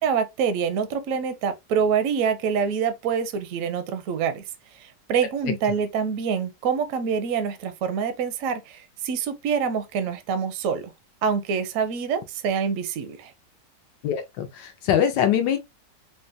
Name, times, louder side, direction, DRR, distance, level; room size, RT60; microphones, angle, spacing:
voice 1, 0.0-4.4 4.7-10.9 11.2-13.3, right 6 dB, 70° right, 0.8 m, -26 dB
voice 2, 14.0-15.6, left 9 dB, 90° left, 1.3 m, -23 dB
3.8 x 2.2 x 2.5 m
omnidirectional pair, 1.9 m